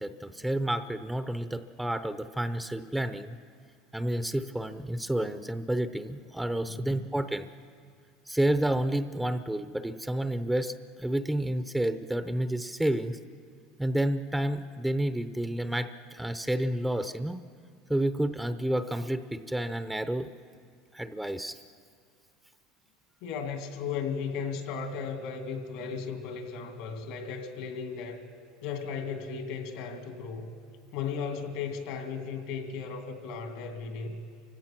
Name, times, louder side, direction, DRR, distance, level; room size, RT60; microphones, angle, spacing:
voice 1, 0.0-3.4 3.9-7.5 8.3-13.2 13.8-17.4 17.9-20.3 20.9-21.6, right 1 dB, 5° right, 10 dB, 0.7 m, -30 dB
voice 2, 6.7-7.0 23.2-28.3 28.6-30.5 30.9-34.2, left 6 dB, 70° left, 5 dB, 2.5 m, -36 dB
29.0 x 16.5 x 6.0 m, 2.2 s
supercardioid pair, 115°, 0 cm